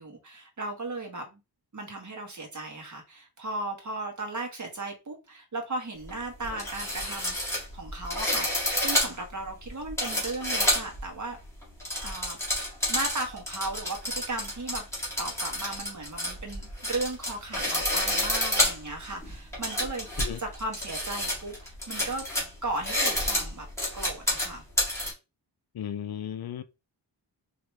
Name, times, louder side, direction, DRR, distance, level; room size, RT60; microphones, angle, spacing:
voice 1, 0.0-1.4 1.7-11.4 12.0-12.4 12.9-14.8 15.2-22.3 22.6-23.7 23.9-24.6, right 2 dB, 40° right, 1.3 m, -36 dB
sound 1, 6.0-6.1 6.4-11.0 11.6-25.1, left 1 dB, 5° left, 1.9 m, -29 dB
voice 2, 25.7-26.6, left 10 dB, 60° left, 0.5 m, -35 dB
4.7 x 2.9 x 3.1 m
wide cardioid pair, 165°, 43 cm